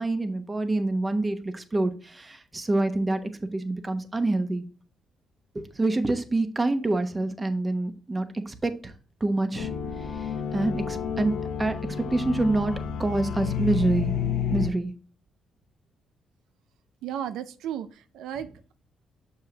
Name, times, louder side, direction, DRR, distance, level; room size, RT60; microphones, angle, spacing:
voice 1, 0.0-4.6 5.5-8.9 9.2-9.7 10.5-12.7 13.0-14.1 14.5-14.9, right 2 dB, 20° right, 1.0 m, -26 dB
sound 1, 9.6-14.7, left 7 dB, 85° left, 1.0 m, -30 dB
voice 2, 17.0-18.7, right 9 dB, 85° right, 0.4 m, -34 dB
6.6 x 5.4 x 2.9 m
cardioid pair, 90°, 0 cm